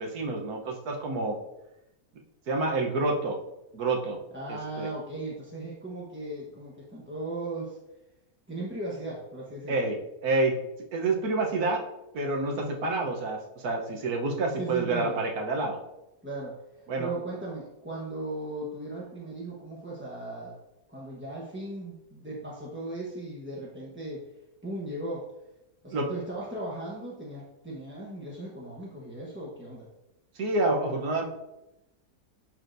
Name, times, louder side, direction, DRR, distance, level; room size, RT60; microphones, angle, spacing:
voice 1, 0.0-1.4 2.5-3.4 3.7-4.2 4.5-4.9 9.7-10.6 10.9-11.8 12.1-15.8 16.9-17.1 25.9-26.1 30.3-31.3, right 2 dB, 75° right, 1 dB, 1.5 m, -28 dB
voice 2, 4.3-7.8 8.5-9.9 12.6-13.0 14.6-15.2 16.2-20.5 20.9-24.2 24.6-25.3 25.8-29.9, right 2 dB, 10° right, -6 dB, 0.9 m, -37 dB
10.5 x 4.4 x 2.6 m, 0.91 s
omnidirectional pair, 1.7 m